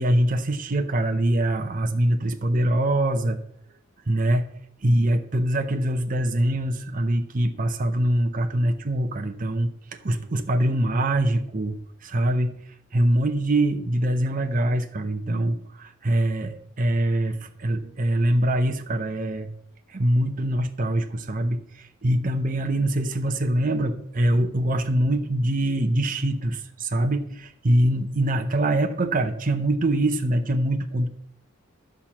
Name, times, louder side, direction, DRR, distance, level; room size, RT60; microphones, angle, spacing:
voice 1, 0.0-3.4 4.1-4.5 4.8-9.7 10.0-12.5 12.9-19.5 19.9-31.1, right 1 dB, 40° right, 6 dB, 0.7 m, -23 dB
11.5 x 4.4 x 7.1 m, 0.69 s
head